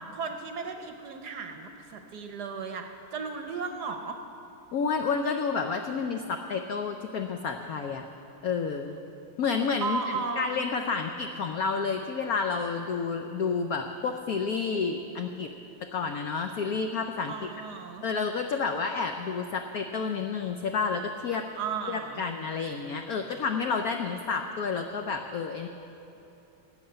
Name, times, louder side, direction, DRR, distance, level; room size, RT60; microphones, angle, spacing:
voice 1, 0.1-4.2 9.8-10.6 17.3-18.0 21.5-22.2, right 5 dB, 65° right, 6 dB, 1.1 m, -35 dB
voice 2, 4.7-8.1 8.4-9.0 9.4-10.0 10.4-15.5 15.8-17.5 18.0-21.4 21.9-25.7, left 5 dB, 85° left, 5 dB, 0.8 m, -30 dB
13.5 x 8.0 x 8.7 m, 2.9 s
omnidirectional pair, 2.3 m